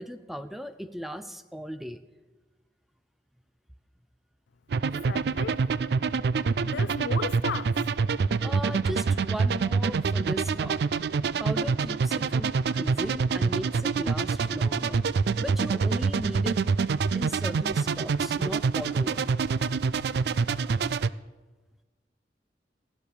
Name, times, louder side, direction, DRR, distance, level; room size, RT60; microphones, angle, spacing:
voice 1, 0.0-2.0 8.4-10.8 11.4-15.0 15.4-16.7 17.1-19.3, equal, ahead, 0.5 m, -37 dB
sound 1, 4.7-21.1, right 5 dB, 65° right, 0.4 m, -26 dB
voice 2, 5.1-5.6 6.6-7.7, left 6 dB, 85° left, 0.4 m, -35 dB
15.5 x 8.4 x 6.7 m
head